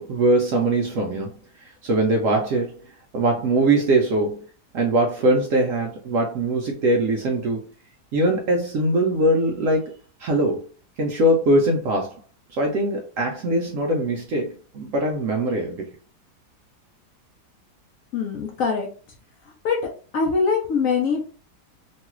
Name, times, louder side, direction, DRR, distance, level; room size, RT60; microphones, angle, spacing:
voice 1, 0.0-1.3 1.6-4.4 4.7-7.6 8.1-9.9 10.2-10.6 11.0-12.2 12.5-15.9, right 1 dB, 70° right, 0.8 m, -22 dB
voice 2, 18.1-18.9 19.6-19.8 20.1-21.2, left 5 dB, 65° left, 0.9 m, -22 dB
3.1 x 2.3 x 2.9 m
omnidirectional pair, 1.8 m